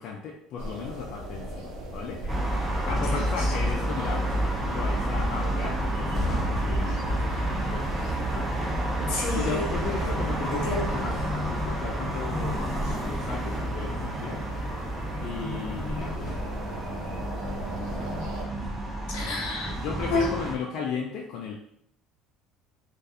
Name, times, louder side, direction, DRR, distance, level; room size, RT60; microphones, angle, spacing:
voice 1, 0.0-2.2 2.9-7.9 8.2-8.5 9.3-11.2 11.5-14.4 15.2-18.1 19.8-21.5, left 5 dB, 55° left, -1 dB, 0.3 m, -36 dB
sound 1, 0.6-18.4, right 1 dB, 85° right, 0.5 m, -40 dB
sound 2, 0.8-20.1, left 1 dB, 25° left, 0.7 m, -41 dB
sound 3, 2.3-20.6, right 1 dB, 20° right, 0.4 m, -30 dB
voice 2, 9.1-9.7 10.5-10.9 19.1-19.8 20.1-20.3, left 3 dB, 85° left, -1 dB, 0.8 m, -29 dB
2.3 x 2.2 x 2.7 m, 0.71 s
cardioid pair, 135°, 0 cm